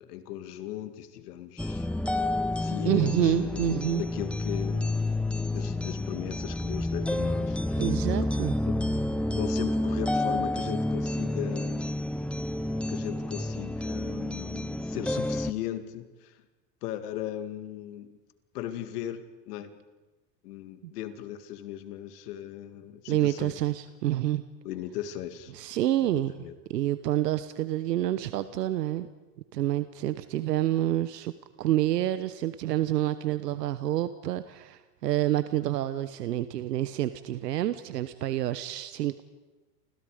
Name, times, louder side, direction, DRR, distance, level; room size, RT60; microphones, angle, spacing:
voice 1, 0.0-1.9 2.6-5.0 5.5-7.9 8.7-8.8 9.3-11.8 12.9-16.4 16.8-18.2 18.5-19.8 20.4-23.5 24.6-25.5 26.0-26.6, left 11 dB, 70° left, 10 dB, 2.4 m, -38 dB
sound 1, 1.6-15.5, left 1 dB, ahead, 0.9 m, -29 dB
voice 2, 2.8-4.0 7.8-8.5 20.8-20.9 23.1-24.4 25.5-26.3 26.7-29.1 29.5-31.3 31.6-39.2, right 13 dB, 90° right, 13 dB, 1.1 m, -28 dB
29.5 x 25.5 x 5.0 m, 1.2 s
hypercardioid pair, 110°, 47 cm